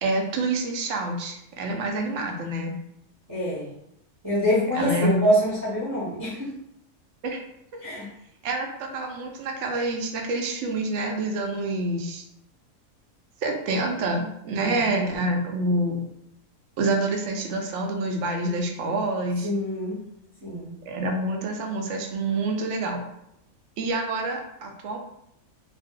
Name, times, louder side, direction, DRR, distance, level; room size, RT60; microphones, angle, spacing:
voice 1, 0.0-2.8 4.7-5.2 7.2-7.4 8.4-12.2 13.4-16.0 16.8-19.5 20.9-23.0 23.8-25.0, right 2 dB, 65° right, 2 dB, 0.8 m, -27 dB
voice 2, 3.3-3.7 4.2-6.5 7.8-8.1 14.5-15.0 19.4-20.0 20.4-20.7, equal, 20° right, -8 dB, 0.7 m, -25 dB
2.6 x 2.0 x 3.6 m, 0.78 s
omnidirectional pair, 1.5 m